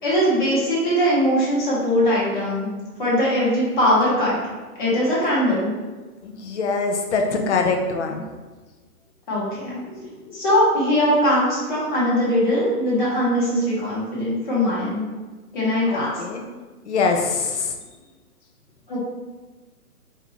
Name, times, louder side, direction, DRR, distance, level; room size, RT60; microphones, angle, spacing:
voice 1, 0.0-2.7 3.0-4.4 4.8-5.7 9.3-9.8 10.3-15.0 15.5-16.1 18.9-19.0, equal, 35° left, -7 dB, 1.3 m, -21 dB
voice 2, 6.2-8.2 10.0-10.1 15.9-16.4 16.9-17.7, left 4 dB, 50° left, 3 dB, 0.5 m, -23 dB
3.7 x 2.7 x 2.8 m, 1.3 s
hypercardioid pair, 165°, 46 cm